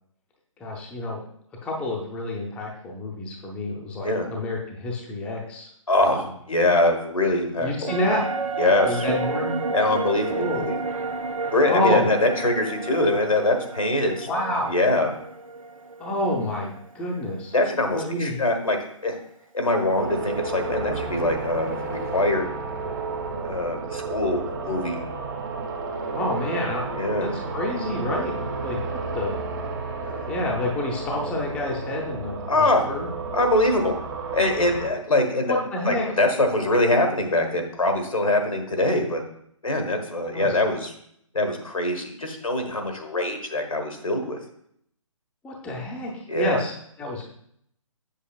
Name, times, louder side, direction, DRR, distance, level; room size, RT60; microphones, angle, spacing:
voice 1, 0.6-1.2 1.6-5.7 6.0-6.2 7.6-8.2 8.9-9.6 10.4-10.7 11.6-12.1 14.2-14.7 16.0-17.5 17.9-18.4 26.1-28.3 28.6-28.8 29.1-29.4 30.3-33.1 35.4-36.1 40.3-40.5 45.4-47.3, left 2 dB, 5° left, -2 dB, 0.6 m, -28 dB
voice 2, 5.9-7.9 8.6-9.1 9.7-10.8 11.5-14.3 14.6-15.1 17.5-18.8 19.0-19.2 19.5-22.5 23.4-25.0 27.0-27.3 30.0-30.2 32.5-32.8 33.3-33.9 34.3-39.2 39.6-40.9 41.3-44.4 46.3-46.6, left 1 dB, 85° left, 4 dB, 1.3 m, -23 dB
sound 1, 7.9-17.4 17.7-17.8, right 3 dB, 85° right, 0.6 m, -31 dB
sound 2, 20.0-34.9, right 4 dB, 35° right, 0.9 m, -32 dB
7.3 x 6.5 x 2.3 m, 0.70 s
figure-of-eight pair, 140°, 17 cm